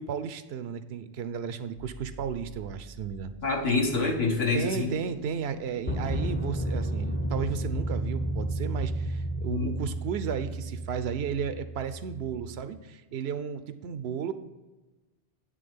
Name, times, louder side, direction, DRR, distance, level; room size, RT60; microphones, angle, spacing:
voice 1, 0.0-3.3 4.5-14.3, right 7 dB, 80° right, 11 dB, 0.8 m, -34 dB
sound 1, 1.8-2.0 5.9-12.6, right 1 dB, 15° left, 0.5 m, -32 dB
voice 2, 3.4-4.9 9.5-9.7, left 3 dB, 70° left, 0 dB, 1.6 m, -26 dB
9.3 x 3.5 x 5.2 m, 1.2 s
omnidirectional pair, 1.1 m